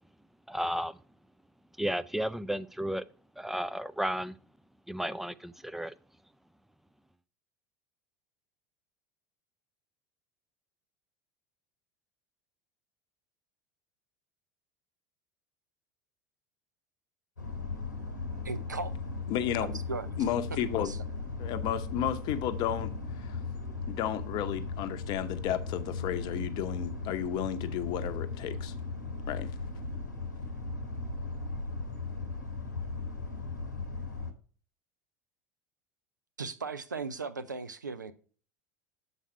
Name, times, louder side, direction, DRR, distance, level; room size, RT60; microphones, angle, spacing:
voice 1, 0.5-0.9 1.8-3.0 3.4-4.3 4.9-5.9, equal, 5° right, 0.3 m, -33 dB
sound 1, 17.4-34.3, left 4 dB, 85° left, 0.9 m, -37 dB
voice 2, 18.4-19.0 19.9-20.1 20.8-21.0 36.4-38.1, right 4 dB, 85° right, 0.5 m, -37 dB
voice 3, 19.3-19.8 20.2-20.9 21.4-23.4 23.9-28.7 29.3-29.5, left 10 dB, 45° left, 0.7 m, -33 dB
7.1 x 4.1 x 4.6 m
figure-of-eight pair, 75°, 10 cm